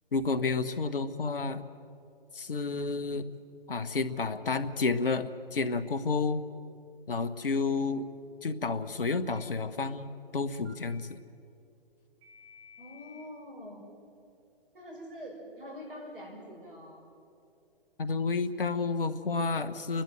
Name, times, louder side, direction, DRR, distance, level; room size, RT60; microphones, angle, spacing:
voice 1, 0.1-1.6 2.3-3.3 3.7-6.4 7.1-8.1 8.4-11.2 18.0-20.0, left 4 dB, 65° left, 11 dB, 1.3 m, -30 dB
Telephone, 4.2-4.7 7.7-8.2 9.1-9.4 10.6-11.0 12.2-13.2, left 1 dB, 30° right, 4.3 m, -52 dB
voice 2, 12.8-13.8 14.7-17.0, equal, 65° right, 0 dB, 6.5 m, -45 dB
29.5 x 12.0 x 8.9 m, 2.6 s
figure-of-eight pair, 130°, 29 cm